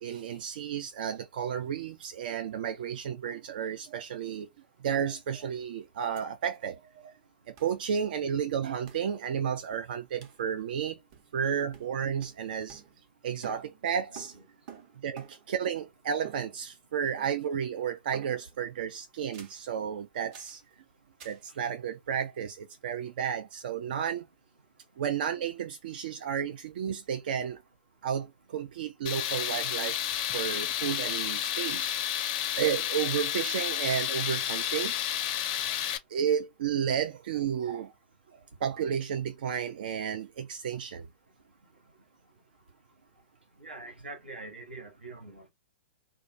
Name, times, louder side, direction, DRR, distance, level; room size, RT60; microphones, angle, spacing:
voice 1, 0.0-4.5 4.8-7.2 7.5-11.0 11.3-12.8 13.2-14.4 15.0-20.6 21.2-24.3 25.0-27.6 28.0-30.0 30.3-31.9 32.6-34.9 36.1-37.9 38.3-41.1, right 8 dB, 60° right, 0.3 m, -32 dB
sound 1, 6.2-6.3 6.5-6.6 7.6-7.8 8.9-9.1 10.2-10.5 11.1-11.5 11.7-13.2 13.4-15.6 16.2-16.9 17.2-17.6 18.1-18.6 19.3-19.7 20.3-20.6 21.2-21.5, right 7 dB, 45° right, 0.8 m, -50 dB
voice 2, 14.1-14.4 14.7-14.8 43.6-45.5, right 2 dB, 90° right, 1.0 m, -44 dB
Tools, 29.1-36.0, left 11 dB, 45° left, 0.4 m, -31 dB
2.3 x 2.2 x 2.5 m
figure-of-eight pair, 110°, 6 cm